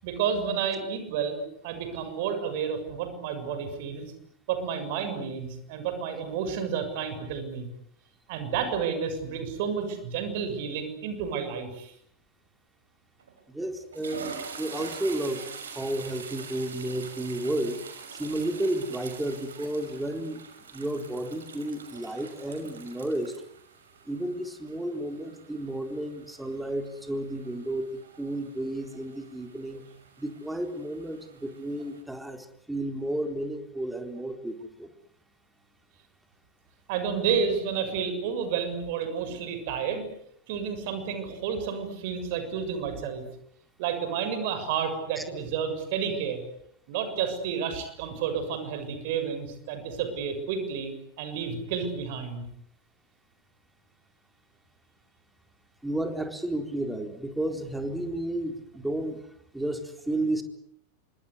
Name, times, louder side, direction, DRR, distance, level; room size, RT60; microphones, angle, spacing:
voice 1, 0.0-4.1 4.5-7.7 8.3-11.9 36.9-40.1 40.5-43.2 43.8-46.4 46.9-50.9 51.2-52.4, right 7 dB, 50° right, 8 dB, 6.9 m, -30 dB
sound 1, 13.2-13.4 13.8-32.0, right 6 dB, 70° right, 6.1 m, -45 dB
voice 2, 13.5-15.4 15.8-17.8 18.1-20.4 20.7-23.3 24.1-27.9 28.2-29.8 30.2-34.9 45.2-45.3 55.8-59.2 59.5-60.4, right 1 dB, 5° right, 6 dB, 4.1 m, -32 dB
28.5 x 25.5 x 8.3 m, 0.69 s
figure-of-eight pair, 90°, 0 cm